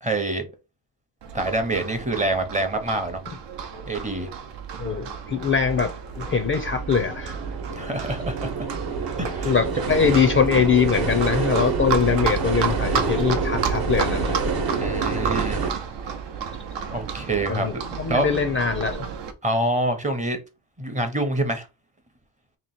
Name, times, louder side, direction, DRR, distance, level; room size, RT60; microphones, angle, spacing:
voice 1, 0.0-0.5 1.3-3.2 3.9-4.3 7.8-8.5 9.2-9.5 14.8-15.6 16.9-17.8 18.1-18.4 19.4-20.4 20.8-21.7, right 2 dB, 20° right, 0.7 m, -26 dB
Livestock farm animals working animals, 1.2-19.3, right 6 dB, 80° right, 0.8 m, -32 dB
voice 2, 4.8-7.4 9.4-14.4 17.5-19.1, left 6 dB, 30° left, 0.4 m, -22 dB
sound 1, 6.2-15.7, right 5 dB, 55° right, 1.0 m, -28 dB
3.0 x 3.0 x 4.2 m
wide cardioid pair, 160°, 42 cm